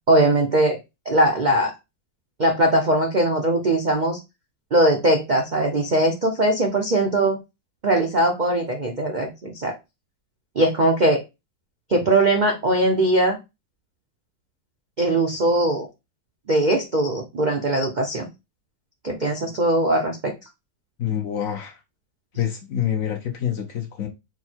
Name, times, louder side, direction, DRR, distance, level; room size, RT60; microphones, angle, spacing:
voice 1, 0.1-0.8 1.1-1.7 2.4-4.2 4.7-7.4 7.8-9.7 10.6-11.2 11.9-13.4 15.0-15.9 16.5-18.3 19.0-20.3, right 1 dB, 50° right, 0.5 m, -20 dB
voice 2, 21.0-21.8 22.4-24.1, left 10 dB, 60° left, 1.0 m, -26 dB
4.6 x 2.2 x 4.3 m
omnidirectional pair, 1.9 m